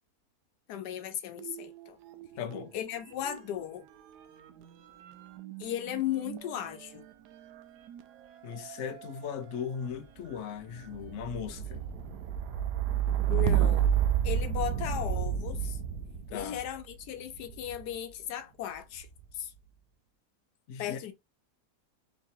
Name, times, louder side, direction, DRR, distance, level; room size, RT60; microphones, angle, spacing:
voice 1, 0.7-2.0 2.7-3.8 5.6-7.0 13.3-13.8 14.2-15.8 16.3-19.1 19.3-19.5 20.8-21.1, left 11 dB, 80° left, 1.2 m, -36 dB
sound 1, 1.3-2.7 3.0-18.0 18.8-19.3, right 9 dB, 80° right, 1.2 m, -33 dB
voice 2, 2.4-2.7 8.4-11.8 16.3-16.6 20.7-21.0, left 7 dB, 60° left, 0.9 m, -38 dB
4.1 x 3.0 x 2.7 m
omnidirectional pair, 1.7 m